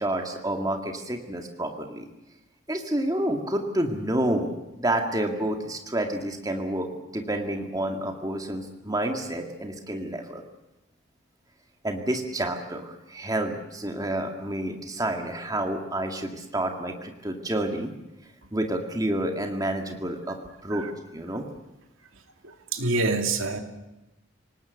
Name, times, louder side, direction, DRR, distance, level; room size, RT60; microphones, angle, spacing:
voice 1, 0.0-2.0 2.7-4.5 4.8-10.4 11.8-17.9 18.5-21.5, right 1 dB, 15° right, 4 dB, 2.0 m, -29 dB
voice 2, 22.4-23.6, right 3 dB, 80° right, 6 dB, 2.6 m, -27 dB
27.5 x 18.5 x 8.1 m, 0.99 s
head